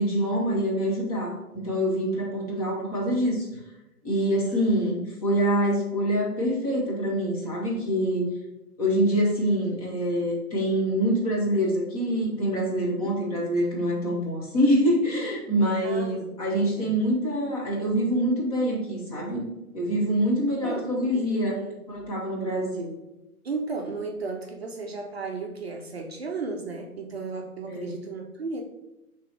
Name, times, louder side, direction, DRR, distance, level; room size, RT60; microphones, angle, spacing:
voice 1, 0.0-3.5 4.0-8.3 8.8-19.4 19.7-21.6 21.9-22.9 27.7-27.9, equal, 25° left, -3 dB, 0.9 m, -25 dB
voice 2, 12.4-13.1 15.8-16.9 20.6-21.8 23.4-28.6, right 4 dB, 45° right, 2 dB, 0.5 m, -35 dB
4.6 x 3.0 x 3.2 m, 0.96 s
hypercardioid pair, 145°, 44 cm